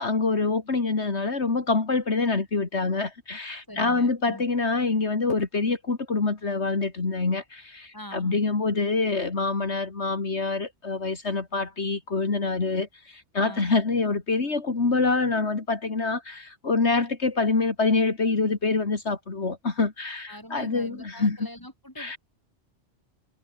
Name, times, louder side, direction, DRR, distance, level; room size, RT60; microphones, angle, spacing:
voice 1, 0.0-21.4 22.0-22.2, left 3 dB, 65° left, 2.8 m, -26 dB
voice 2, 3.7-4.4 7.9-8.4 9.6-9.7 13.4-13.7 20.3-22.2, left 1 dB, 15° left, 6.8 m, -43 dB
omnidirectional pair, 1.2 m